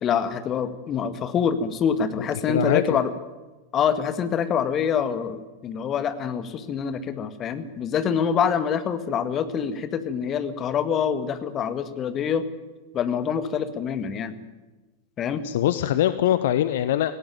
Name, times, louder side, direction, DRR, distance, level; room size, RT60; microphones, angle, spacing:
voice 1, 0.0-3.1 3.7-12.5 12.9-14.4 15.2-15.4, left 7 dB, 30° left, 11 dB, 1.8 m, -25 dB
voice 2, 2.5-3.0 15.4-17.1, left 12 dB, 55° left, 13 dB, 0.8 m, -22 dB
19.0 x 17.0 x 9.2 m, 1.2 s
figure-of-eight pair, 90°, 0 cm